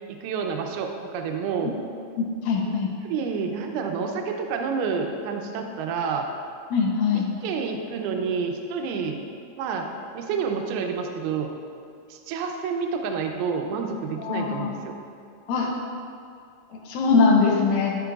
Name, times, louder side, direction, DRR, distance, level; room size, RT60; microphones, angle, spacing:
voice 1, 0.1-1.8 2.7-2.8 3.0-6.3 7.1-9.2 9.6-9.9 10.1-11.5 12.1-15.0, right 5 dB, 80° right, 3 dB, 2.5 m, -29 dB
voice 2, 2.5-2.9 6.7-7.3 14.2-14.7 15.5-15.7 16.9-17.9, left 4 dB, 75° left, 0 dB, 2.3 m, -21 dB
11.5 x 6.4 x 2.4 m, 2.3 s
omnidirectional pair, 4.7 m